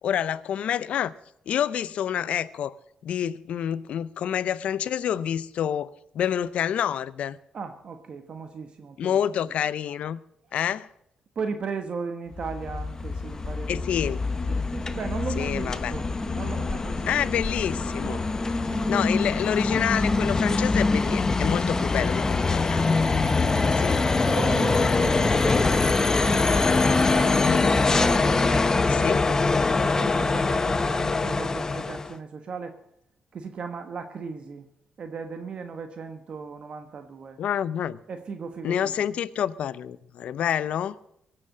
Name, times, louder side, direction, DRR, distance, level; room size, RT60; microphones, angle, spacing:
voice 1, 0.0-1.1 1.5-2.8 3.0-7.4 9.0-10.2 10.5-10.9 13.7-14.2 15.4-15.9 17.1-18.2 18.9-22.9 23.8-24.0 27.3-27.7 28.9-29.2 37.4-38.0 38.6-41.0, left 9 dB, 70° left, 0.6 m, -28 dB
voice 2, 7.5-9.5 11.3-17.1 18.0-19.2 23.4-23.9 24.3-32.8 33.3-34.7 35.0-37.4 38.1-39.1, right 5 dB, 55° right, 1.1 m, -37 dB
sound 1, 12.3-32.1, left 3 dB, 25° left, 0.8 m, -24 dB
18.0 x 7.7 x 7.6 m
cardioid pair, 80°, 2 cm